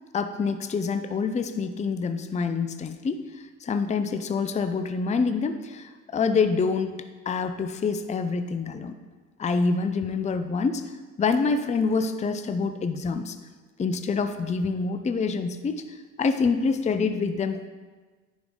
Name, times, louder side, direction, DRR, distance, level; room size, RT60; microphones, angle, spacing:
voice 1, 0.1-8.9 9.4-10.8 11.2-13.4 13.8-17.7, left 4 dB, 25° left, 9 dB, 0.5 m, -26 dB
10.0 x 5.2 x 3.7 m, 1.4 s
cardioid pair, 90°, 30 cm